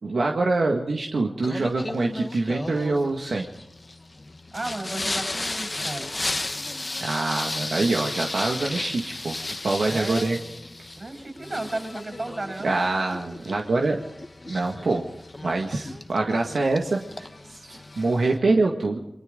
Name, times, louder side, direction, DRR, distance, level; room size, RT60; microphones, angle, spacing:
voice 1, 0.0-3.5 7.0-10.4 12.6-14.0 14.5-15.0 15.4-19.0, right 3 dB, 85° right, 1 dB, 1.8 m, -25 dB
Singing, 1.4-18.4, left 2 dB, 35° left, 1.2 m, -34 dB
voice 2, 4.5-6.1 9.8-10.4 10.9-12.7 15.9-16.0, right 2 dB, 40° right, 4 dB, 7.9 m, -34 dB
29.5 x 23.0 x 3.8 m, 0.85 s
wide cardioid pair, 75°, 0 cm